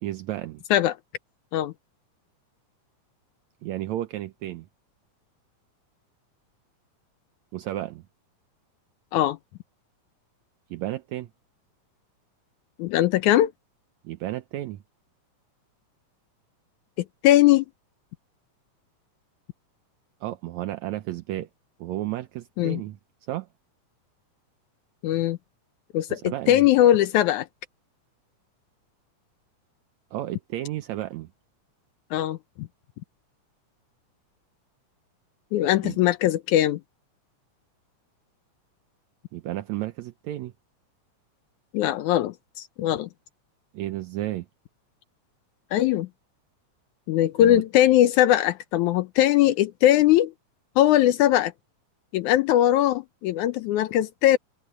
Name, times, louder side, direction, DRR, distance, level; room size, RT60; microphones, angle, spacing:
voice 1, 0.0-0.6 3.6-4.7 7.5-8.0 10.7-11.3 14.0-14.8 20.2-21.5 21.8-23.0 23.3-23.5 26.1-26.6 30.1-31.3 35.8-36.0 39.3-40.5 43.7-44.5 47.4-47.6, right 14 dB, 75° right, 2.0 m, -32 dB
voice 2, 12.8-13.5 17.0-17.7 22.6-22.8 25.0-25.4 25.9-27.5 32.1-32.7 35.5-36.8 41.7-43.1 45.7-46.1 47.1-50.3 50.8-51.5 52.1-54.4, left 13 dB, 80° left, 2.2 m, -20 dB
omnidirectional pair, 3.5 m